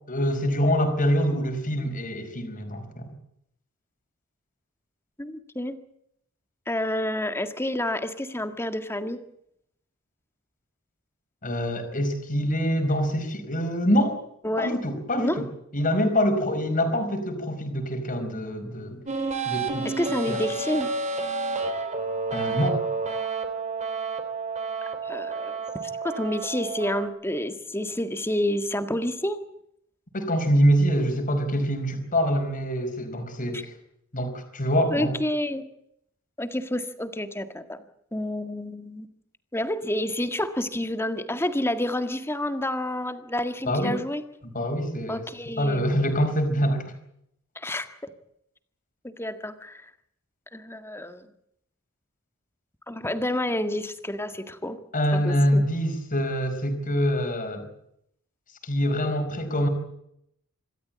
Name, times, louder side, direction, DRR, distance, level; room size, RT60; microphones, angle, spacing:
voice 1, 0.1-3.1 11.4-14.2 14.6-15.5 15.7-19.0 19.5-19.9 20.3-20.4 22.3-22.8 30.1-33.7 34.1-35.1 43.7-43.9 44.4-45.3 45.6-46.9 54.9-57.7 58.6-59.7, equal, 40° left, 6 dB, 4.9 m, -25 dB
voice 2, 5.2-5.8 6.7-9.2 14.4-14.8 15.2-15.5 19.9-20.9 25.0-25.6 26.0-29.4 33.5-33.6 34.9-35.6 36.4-37.8 38.1-39.1 39.5-44.2 45.1-45.9 47.6-48.1 49.0-49.8 50.5-51.3 52.9-54.8 55.1-55.6, left 1 dB, 10° left, 9 dB, 1.8 m, -29 dB
sound 1, 19.1-27.1, right 4 dB, 35° right, 3.7 m, -30 dB
26.5 x 14.0 x 8.7 m, 0.74 s
head